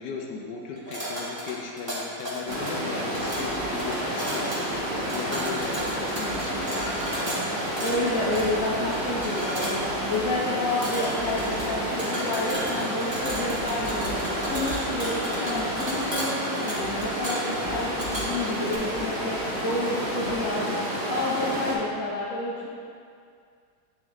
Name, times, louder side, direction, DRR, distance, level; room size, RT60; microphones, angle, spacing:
voice 1, 0.0-4.7 5.1-6.5, left 5 dB, 85° left, 0 dB, 1.3 m, -36 dB
sound 1, 0.8-18.8, right 1 dB, 20° right, 1.0 m, -35 dB
Stream, 2.5-21.7, equal, 40° right, 1.6 m, -30 dB
voice 2, 6.2-6.5 7.8-19.4 19.6-22.7, left 2 dB, 55° left, -8 dB, 1.2 m, -30 dB
9.4 x 3.4 x 3.5 m, 2.2 s
omnidirectional pair, 1.8 m